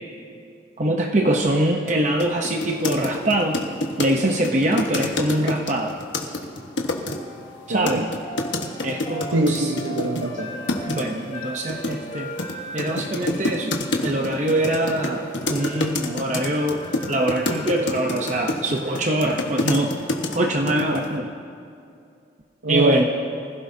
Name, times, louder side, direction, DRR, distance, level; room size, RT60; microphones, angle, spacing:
voice 1, 0.8-3.6 4.0-6.0 7.7-8.0 8.8-9.7 10.8-12.3 12.7-13.7 14.0-19.9 20.3-21.3 22.7-23.0, right 1 dB, 40° right, 2 dB, 0.7 m, -23 dB
sound 1, 1.9-2.0 2.2-7.2 7.9-10.3 10.7-11.0 11.7-20.4 20.7-21.1, left 2 dB, 75° left, 1.4 m, -27 dB
sound 2, 7.1-21.2, equal, 35° left, 3.3 m, -40 dB
voice 2, 7.7-8.1 9.3-10.5 22.6-23.0, right 2 dB, 85° right, 2 dB, 0.9 m, -23 dB
25.0 x 15.5 x 2.7 m, 2.4 s
head